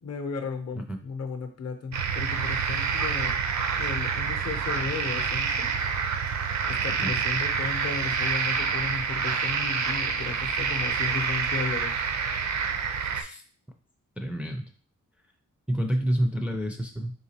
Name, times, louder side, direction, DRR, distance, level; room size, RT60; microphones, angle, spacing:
voice 1, 0.0-3.4 3.8-5.7 6.7-11.9 15.8-15.9, left 5 dB, 55° left, 6 dB, 0.7 m, -35 dB
sound 1, 1.9-13.2, right 6 dB, 65° right, 0.5 m, -27 dB
voice 2, 14.2-14.6 15.7-17.1, equal, 5° right, 3 dB, 0.4 m, -28 dB
3.9 x 3.2 x 2.8 m, 0.41 s
wide cardioid pair, 145°, 31 cm